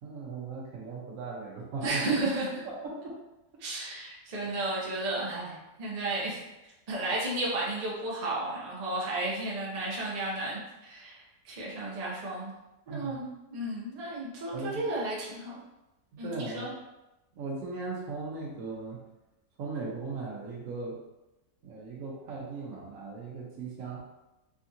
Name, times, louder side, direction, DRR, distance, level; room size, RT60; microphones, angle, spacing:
voice 1, 0.0-2.1 2.6-3.2 12.9-13.2 14.5-14.9 16.2-16.7 17.4-19.0 19.6-21.0 21.6-24.0, right 4 dB, 70° right, -2 dB, 1.0 m, -38 dB
voice 2, 1.8-2.5 3.6-12.6 12.9-15.6 16.2-16.7, right 2 dB, 40° right, -5 dB, 0.5 m, -33 dB
3.5 x 2.4 x 2.7 m, 0.97 s
omnidirectional pair, 1.6 m